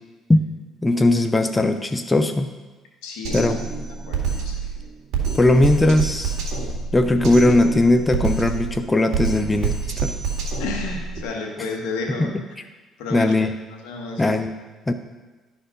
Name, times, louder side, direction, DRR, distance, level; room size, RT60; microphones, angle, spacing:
voice 1, 0.8-2.5 3.3-3.6 5.3-6.4 6.9-9.7 10.0-10.1 12.2-12.4 13.1-13.5 14.2-14.5 14.9-15.0, left 2 dB, 15° left, 8 dB, 0.6 m, -18 dB
voice 2, 3.0-3.5 4.1-4.7 10.6-12.3 13.0-13.4 13.8-14.3, left 3 dB, 90° left, 1 dB, 1.5 m, -31 dB
Drum kit, 3.2-11.2, right 5 dB, 70° right, 1.9 m, -27 dB
11.5 x 4.4 x 5.3 m, 1.2 s
supercardioid pair, 85°, 0 cm